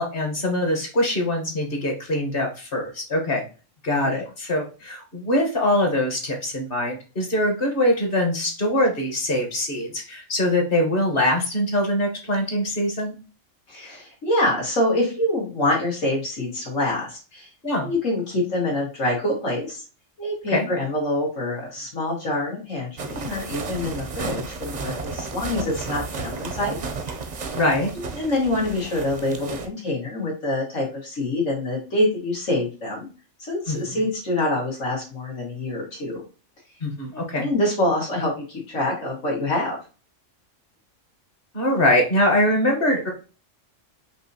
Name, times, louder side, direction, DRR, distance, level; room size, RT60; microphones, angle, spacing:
voice 1, 0.0-3.4 3.8-13.1 17.6-17.9 20.5-20.7 27.5-27.9 33.7-34.0 36.8-37.4 41.5-43.1, left 1 dB, 50° left, 2 dB, 1.3 m, -23 dB
voice 2, 13.7-17.5 17.8-19.8 20.2-26.8 27.9-33.1 33.4-36.2 37.1-39.8, left 1 dB, 85° left, -3 dB, 2.2 m, -26 dB
sound 1, 23.0-29.7, right 4 dB, 50° right, 0.5 m, -33 dB
5.4 x 2.7 x 2.7 m, 0.34 s
omnidirectional pair, 1.3 m